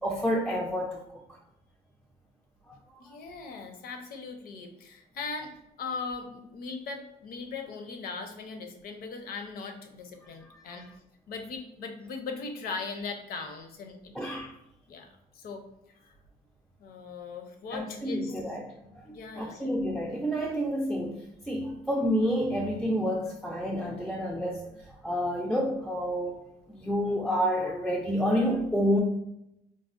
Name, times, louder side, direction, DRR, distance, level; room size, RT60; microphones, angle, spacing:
voice 1, 0.0-1.2 2.7-2.8 10.5-10.8 14.1-14.5 17.7-26.4 26.7-29.0, equal, ahead, 0 dB, 0.3 m, -29 dB
voice 2, 3.0-5.5 5.8-10.8 11.3-14.2 14.9-15.1 15.3-15.6 16.8-18.3 19.1-19.7, left 4 dB, 60° left, 5 dB, 0.6 m, -39 dB
3.9 x 2.0 x 2.4 m, 0.85 s
cardioid pair, 110°, 17 cm